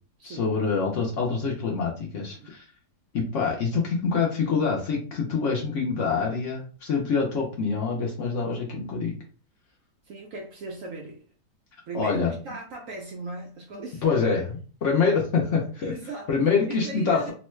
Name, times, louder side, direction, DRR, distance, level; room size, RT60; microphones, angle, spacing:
voice 1, 0.2-2.6 3.1-9.1 11.9-12.3 14.0-15.9 16.3-17.3, left 5 dB, 60° left, 0.8 m, -25 dB
voice 2, 10.0-11.3 11.9-14.2 14.8-14.9 15.8-17.3, right 3 dB, 70° right, 0.8 m, -38 dB
3.1 x 2.1 x 3.1 m
omnidirectional pair, 1.8 m